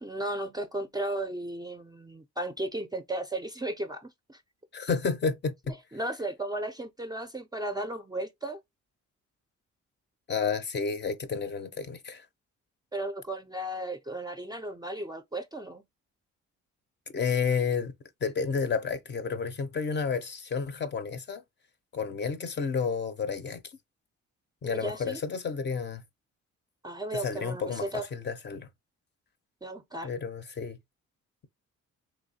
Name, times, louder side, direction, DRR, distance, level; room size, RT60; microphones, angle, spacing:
voice 1, 0.0-4.4 5.9-8.6 12.9-15.8 24.7-25.2 26.8-28.1 29.6-30.1, right 1 dB, 15° right, 0.4 m, -35 dB
voice 2, 4.7-5.5 10.3-12.3 17.1-17.9 18.2-21.4 21.9-23.8 24.6-26.0 27.1-28.7 30.0-30.8, left 5 dB, 35° left, 0.5 m, -31 dB
3.0 x 3.0 x 2.7 m
cardioid pair, 90°, 30 cm